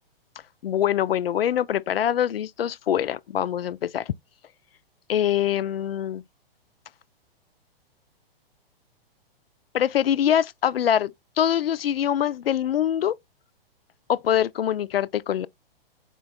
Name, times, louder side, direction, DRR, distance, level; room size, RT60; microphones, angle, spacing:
voice 1, 0.6-4.1 5.1-6.2 9.7-13.2 14.1-15.5, left 10 dB, 75° left, 0.4 m, -24 dB
4.4 x 2.2 x 4.0 m
figure-of-eight pair, 115°, 30 cm